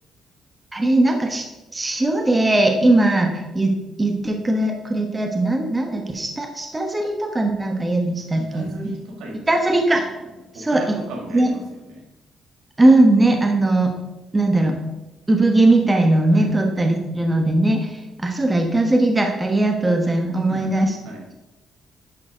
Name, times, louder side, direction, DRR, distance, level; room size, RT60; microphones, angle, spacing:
voice 1, 0.7-1.4 1.7-8.9 9.5-10.1 10.6-10.9 11.3-11.5 12.8-13.9 14.3-14.8 15.3-20.9, right 2 dB, 20° right, 3 dB, 1.2 m, -19 dB
voice 2, 8.0-9.7 10.2-10.3 10.5-12.1 16.3-16.6 20.4-21.3, right 1 dB, 85° right, -1 dB, 2.4 m, -37 dB
10.5 x 3.9 x 5.0 m, 1.0 s
cardioid pair, 90°, 0 cm